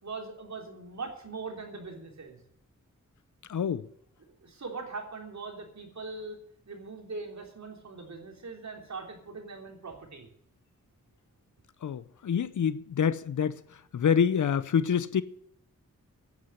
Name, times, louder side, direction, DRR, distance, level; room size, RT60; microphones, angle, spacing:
voice 1, 0.0-2.4 4.4-6.4 6.7-10.3, right 4 dB, 60° right, 3.6 m, -41 dB
voice 2, 3.5-3.9 11.8-15.2, left 7 dB, 70° left, 0.7 m, -27 dB
10.0 x 9.6 x 9.7 m
wide cardioid pair, 90°, 31 cm